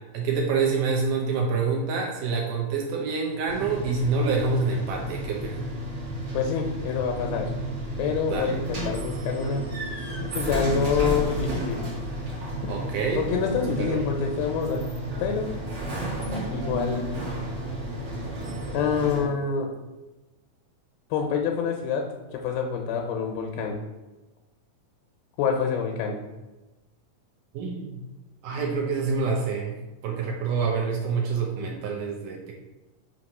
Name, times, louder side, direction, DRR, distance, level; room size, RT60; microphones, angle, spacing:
voice 1, 0.1-5.7 8.3-8.6 12.7-13.3 13.8-14.0 27.5-28.0 28.4-29.7 30.0-32.4, right 4 dB, 75° right, 0 dB, 2.1 m, -27 dB
sound 1, 3.5-19.2, right 1 dB, 45° right, 1.4 m, -32 dB
voice 2, 6.3-7.5 8.0-9.6 10.3-11.8 12.6-12.8 13.2-14.9 15.2-15.5 16.5-17.2 18.7-19.7 21.1-22.1 22.3-23.8 25.4-26.2, left 6 dB, 85° left, 2 dB, 2.5 m, -26 dB
5.9 x 3.1 x 5.3 m, 1.1 s
omnidirectional pair, 4.1 m